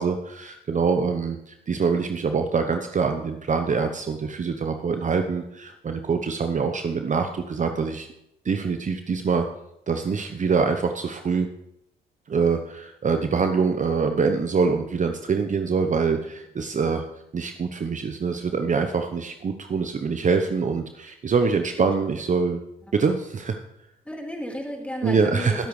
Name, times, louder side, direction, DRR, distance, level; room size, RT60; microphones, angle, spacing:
voice 1, 0.0-8.1 8.4-9.5 9.9-11.5 12.3-17.0 17.3-22.6 22.9-23.6 25.0-25.6, right 5 dB, 40° right, 6 dB, 0.9 m, -24 dB
voice 2, 24.0-25.7, left 1 dB, 5° left, 0 dB, 4.3 m, -34 dB
21.0 x 8.2 x 3.3 m, 0.81 s
supercardioid pair, 60°, 20 cm